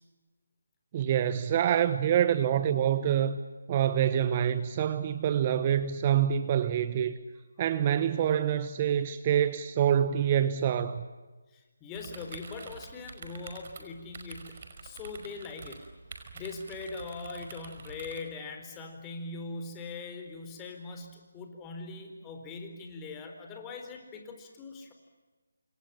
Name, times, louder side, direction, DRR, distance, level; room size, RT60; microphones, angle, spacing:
voice 1, 0.9-3.4 3.7-7.1 7.6-11.0, right 9 dB, 30° right, 12 dB, 1.2 m, -26 dB
voice 2, 11.5-15.8 16.3-24.9, left 3 dB, 15° left, 5 dB, 4.3 m, -41 dB
sound 1, 11.9-18.2, right 4 dB, 45° right, 5.4 m, -47 dB
28.5 x 26.5 x 7.3 m, 1.2 s
figure-of-eight pair, 150°, 0 cm